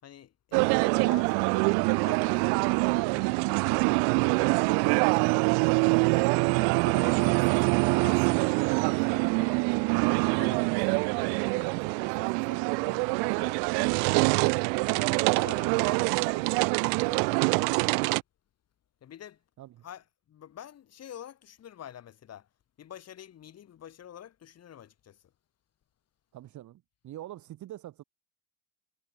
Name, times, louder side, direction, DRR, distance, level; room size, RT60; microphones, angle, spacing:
voice 1, 0.0-4.6 6.4-9.8 10.4-13.6 14.9-17.4 19.0-19.4 19.8-22.5 22.8-25.2, left 10 dB, 35° left, 6.4 m, -48 dB
sound 1, 0.5-18.2, right 40 dB or more, 60° right, 0.5 m, -25 dB
voice 2, 4.7-5.7 19.6-19.9 26.3-28.0, right 13 dB, 40° right, 2.5 m, -44 dB
supercardioid pair, 130°, 43 cm